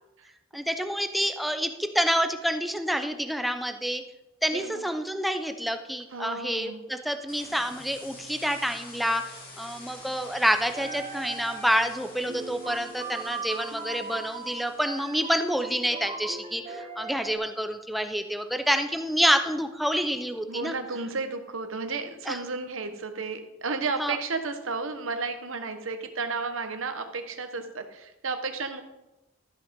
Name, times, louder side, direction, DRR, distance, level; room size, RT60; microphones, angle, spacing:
voice 1, 0.5-4.0 4.4-9.2 9.6-20.7 22.3-22.4 24.0-24.2, equal, ahead, 7 dB, 0.7 m, -28 dB
voice 2, 4.5-4.9 6.1-6.8 20.5-28.8, right 4 dB, 80° right, 7 dB, 1.2 m, -33 dB
sound 1, 7.3-15.5, left 2 dB, 50° left, 2.9 m, -48 dB
sound 2, 10.7-12.0 12.3-17.4, right 4 dB, 30° right, 1.0 m, -39 dB
13.0 x 5.9 x 5.2 m, 0.95 s
head